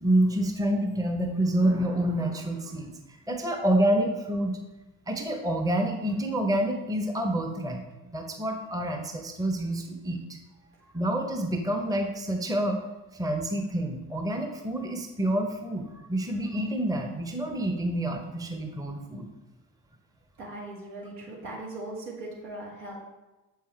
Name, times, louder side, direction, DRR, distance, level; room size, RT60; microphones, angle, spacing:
voice 1, 0.0-4.6 5.1-10.4 10.9-12.8 13.1-19.3, right 1 dB, 10° right, 4 dB, 0.8 m, -28 dB
voice 2, 20.4-23.0, right 2 dB, 70° right, -3 dB, 1.9 m, -39 dB
6.9 x 5.6 x 3.3 m, 1.1 s
hypercardioid pair, 50°, 47 cm